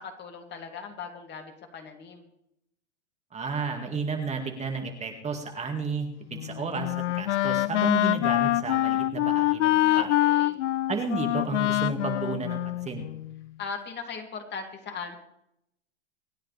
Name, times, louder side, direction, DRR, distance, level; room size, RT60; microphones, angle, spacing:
voice 1, 0.0-2.3 9.6-10.6 13.6-15.2, left 5 dB, 30° left, 4 dB, 2.5 m, -39 dB
voice 2, 3.3-10.1 10.9-13.1, right 4 dB, 20° right, 3 dB, 2.0 m, -32 dB
Wind instrument woodwind instrument, 6.3-13.4, left 14 dB, 80° left, 0.5 m, -25 dB
26.0 x 9.9 x 3.4 m, 0.78 s
hypercardioid pair, 115°, 36 cm